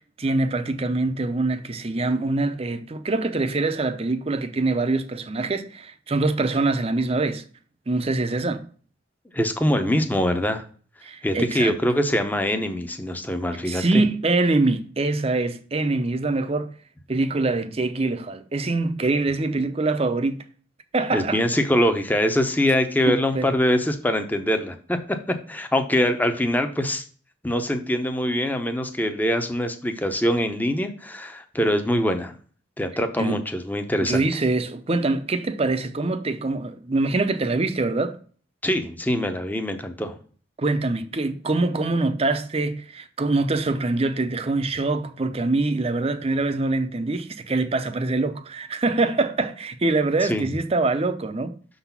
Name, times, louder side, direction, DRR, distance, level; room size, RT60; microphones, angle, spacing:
voice 1, 0.0-7.5 7.9-8.7 11.0-11.7 13.7-16.7 17.1-20.4 20.9-21.4 23.1-23.5 33.2-33.4 34.0-38.2 40.6-51.5, right 2 dB, 30° right, 0.6 m, -24 dB
voice 2, 9.3-10.6 11.2-14.0 21.1-25.0 25.5-27.0 27.4-32.4 32.8-34.3 38.6-40.1 50.3-50.4, equal, 10° left, 0.7 m, -23 dB
6.3 x 4.0 x 5.8 m
head